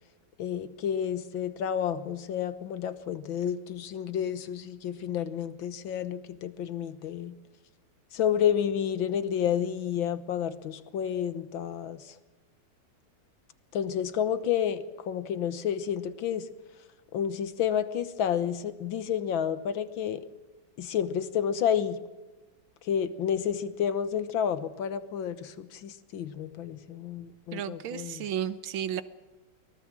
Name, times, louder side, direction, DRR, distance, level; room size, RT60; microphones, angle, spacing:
voice 1, 0.4-7.3 8.1-12.2 13.7-16.5 17.1-20.3 20.8-22.0 22.8-28.3, left 9 dB, 85° left, 13 dB, 1.9 m, -30 dB
voice 2, 27.5-29.0, right 10 dB, 90° right, 14 dB, 1.8 m, -33 dB
24.0 x 19.0 x 7.6 m, 1.1 s
omnidirectional pair, 2.1 m